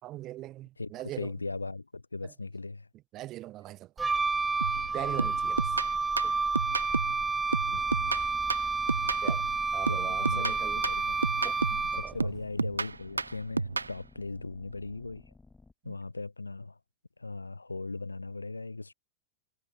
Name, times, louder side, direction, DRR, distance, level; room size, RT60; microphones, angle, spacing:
voice 1, 0.0-1.3 2.2-2.3 3.1-4.1 4.9-5.8 6.2-6.3 9.2-9.4 9.7-10.9 11.4-12.3 15.8-16.0, right 15 dB, 35° right, 1.7 m, -41 dB
voice 2, 1.2-2.9 7.7-7.8 9.9-11.2 11.9-15.3 15.8-16.8 17.2-18.9, left 3 dB, 80° left, 2.3 m, -38 dB
Wind instrument woodwind instrument, 4.0-12.3, right 4 dB, 10° right, 0.5 m, -30 dB
sound 1, 4.6-4.9 5.2-7.2 7.5-9.6 9.9-11.9 12.2-13.9, right 3 dB, 80° right, 0.5 m, -31 dB
sound 2, 7.7-15.7, left 3 dB, 10° left, 6.0 m, -56 dB
figure-of-eight pair, 90°, 0 cm